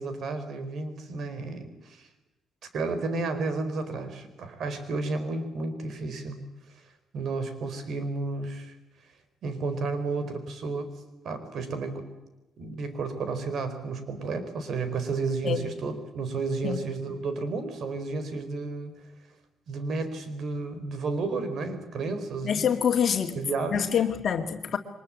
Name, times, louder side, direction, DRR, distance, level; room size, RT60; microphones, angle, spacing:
voice 1, 0.0-2.1 2.7-6.4 7.1-8.7 9.4-12.1 12.6-19.0 19.7-22.7 23.4-24.0, right 3 dB, 65° right, 10 dB, 4.4 m, -32 dB
voice 2, 22.4-23.3 23.7-24.8, left 8 dB, 55° left, 5 dB, 2.1 m, -26 dB
23.5 x 21.0 x 8.7 m, 1.0 s
cardioid pair, 90°, 0 cm